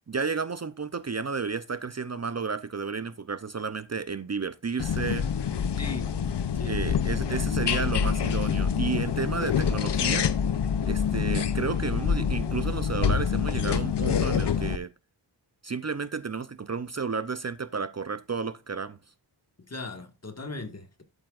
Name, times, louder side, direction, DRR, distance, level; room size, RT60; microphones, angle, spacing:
voice 1, 0.1-5.3 6.6-10.3 10.8-14.9 15.6-19.0, right 5 dB, 40° right, 0.7 m, -32 dB
sound 1, 4.8-14.8, left 7 dB, 75° left, 0.8 m, -26 dB
voice 2, 5.7-6.1 6.5-6.8 19.7-21.0, left 3 dB, 35° left, 1.9 m, -38 dB
11.0 x 9.0 x 2.5 m
wide cardioid pair, 70°, 42 cm